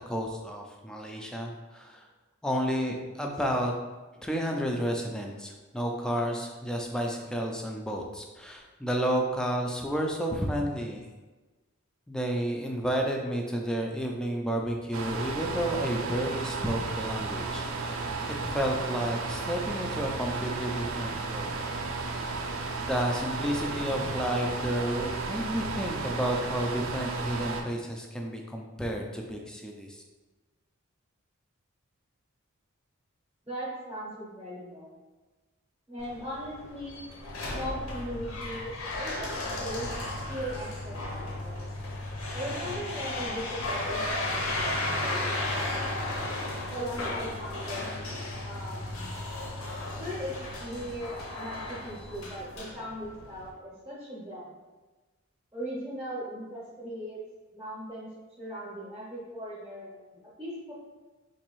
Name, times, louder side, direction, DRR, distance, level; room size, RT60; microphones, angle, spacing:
voice 1, 0.1-2.1 2.4-3.7 4.2-11.0 12.1-18.1 18.4-21.6 22.9-30.0, equal, 5° left, 1 dB, 0.3 m, -31 dB
sound 1, 14.9-27.6, right 3 dB, 75° right, 0.4 m, -33 dB
voice 2, 33.4-35.0 35.9-37.0 37.5-39.3 39.6-39.9 40.3-41.7 42.3-45.4 46.7-47.9 48.4-49.2 50.0-54.5 55.5-57.2 57.5-58.1 58.4-60.7, equal, 15° right, -6 dB, 0.7 m, -39 dB
sound 2, 36.0-53.5, left 2 dB, 80° left, 0.7 m, -34 dB
4.0 x 2.6 x 3.0 m, 1.2 s
head